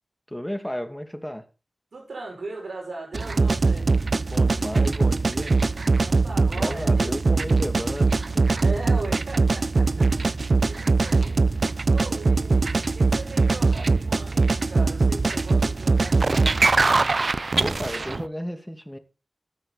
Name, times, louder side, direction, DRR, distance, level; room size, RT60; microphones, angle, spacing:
voice 1, 0.3-1.5 4.2-5.5 6.5-8.5 10.1-10.4 17.6-19.0, equal, 5° left, 2.5 m, -34 dB
voice 2, 1.9-3.9 5.7-7.6 8.6-10.1 10.6-11.4 11.9-16.9, right 2 dB, 85° right, 6.6 m, -38 dB
sound 1, 3.1-18.3, right 3 dB, 60° right, 0.6 m, -22 dB
13.5 x 11.0 x 4.2 m
cardioid pair, 45°, 0 cm